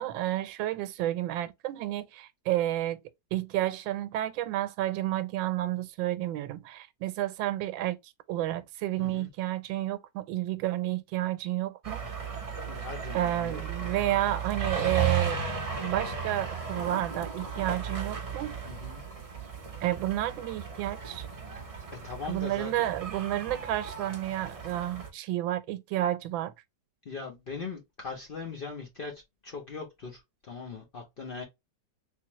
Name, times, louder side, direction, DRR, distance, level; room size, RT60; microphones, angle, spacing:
voice 1, 0.0-3.0 3.3-8.0 8.3-12.1 13.1-15.4 15.8-18.6 19.8-21.3 22.2-26.5, right 14 dB, 90° right, 1.3 m, -31 dB
voice 2, 9.0-9.3 12.7-13.6 18.7-19.0 22.0-22.7 27.0-31.4, left 5 dB, 75° left, 0.5 m, -40 dB
sound 1, 11.8-25.1, right 6 dB, 60° right, 0.3 m, -35 dB
3.5 x 2.9 x 2.9 m
omnidirectional pair, 2.0 m